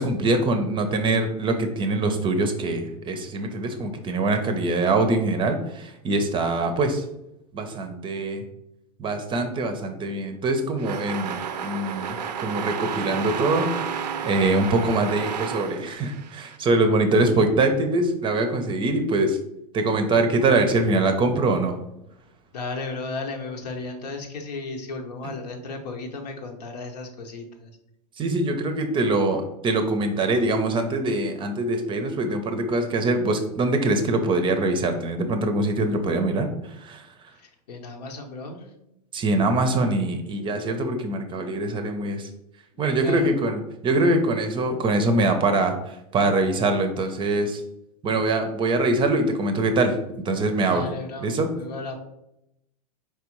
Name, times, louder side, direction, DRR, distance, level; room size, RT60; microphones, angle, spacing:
voice 1, 0.0-7.0 7.5-8.4 9.0-13.7 14.2-19.4 19.7-21.8 25.2-25.3 28.2-37.1 39.1-42.3 42.8-47.6 48.0-50.9 51.2-51.5, right 2 dB, 25° right, 7 dB, 0.6 m, -23 dB
sound 1, 10.8-16.6, right 7 dB, 80° right, 0.5 m, -31 dB
voice 2, 22.5-27.7 37.4-38.7 42.7-43.3 50.7-51.9, left 3 dB, 75° left, 4 dB, 0.9 m, -35 dB
4.6 x 3.4 x 3.0 m, 0.84 s
hypercardioid pair, 100°, 21 cm